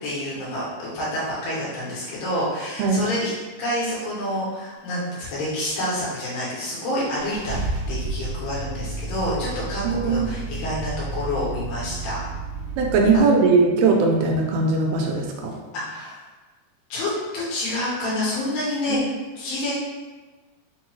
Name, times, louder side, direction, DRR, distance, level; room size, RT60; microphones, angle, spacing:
voice 1, 0.0-3.3 3.6-7.6 7.9-12.2 15.7-16.2 16.9-19.0 19.4-19.7, left 1 dB, 80° left, -7 dB, 3.2 m, -28 dB
Car / Engine starting, 6.3-6.4 7.0-13.2, right 2 dB, 70° right, 1.9 m, -31 dB
voice 2, 9.8-10.3 12.8-15.5 18.9-19.0, right 4 dB, 85° right, 1 dB, 2.5 m, -19 dB
6.5 x 2.3 x 3.0 m, 1.2 s
omnidirectional pair, 4.2 m